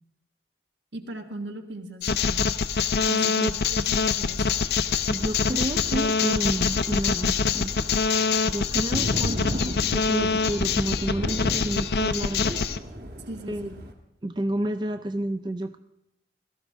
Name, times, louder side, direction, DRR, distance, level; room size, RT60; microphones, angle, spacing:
voice 1, 0.9-2.5 3.1-4.5 13.3-13.8, right 1 dB, 85° right, 4 dB, 1.5 m, -39 dB
sound 1, 2.0-12.8, left 5 dB, 60° left, 0.5 m, -25 dB
voice 2, 3.1-3.5 5.1-7.7 8.4-12.6 13.5-13.7 14.2-15.8, right 1 dB, 25° right, 9 dB, 0.4 m, -30 dB
Thunder, 4.3-13.9, equal, 55° right, 1.6 m, -37 dB
17.5 x 13.0 x 3.6 m, 0.86 s
head